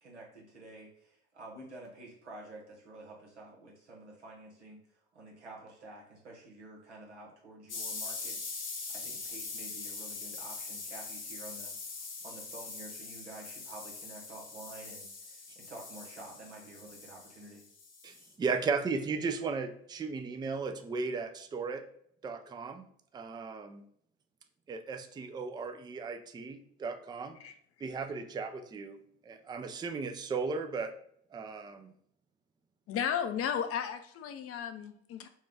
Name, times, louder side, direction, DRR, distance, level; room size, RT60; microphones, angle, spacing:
voice 1, 0.0-11.7 12.2-17.6, right 2 dB, 90° right, -2 dB, 1.1 m, -50 dB
sound 1, 7.7-18.3, left 4 dB, 85° left, 0.8 m, -42 dB
voice 2, 18.0-21.9 22.2-22.9 23.1-23.8 24.7-27.4 27.8-29.0 29.2-30.9 31.3-31.9, right 4 dB, 15° right, 7 dB, 0.4 m, -36 dB
voice 3, 32.9-35.3, left 8 dB, 45° left, 8 dB, 0.6 m, -34 dB
4.4 x 2.3 x 3.3 m, 0.68 s
figure-of-eight pair, 60°, 33 cm